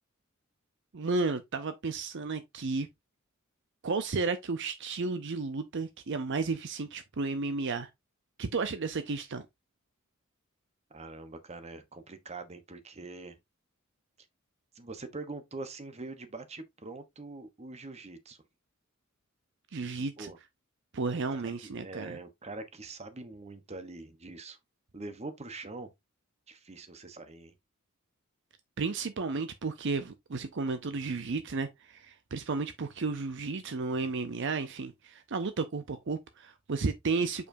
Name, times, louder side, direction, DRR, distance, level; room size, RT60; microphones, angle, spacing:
voice 1, 0.9-2.9 3.8-7.9 8.4-9.4 19.7-20.3 20.9-22.2 28.8-37.5, right 4 dB, 60° right, 0.6 m, -33 dB
voice 2, 10.9-13.4 14.7-18.4 20.2-20.4 21.1-24.6 24.9-25.9 26.5-27.5, right 3 dB, 30° right, 1.0 m, -44 dB
6.8 x 5.3 x 2.6 m
head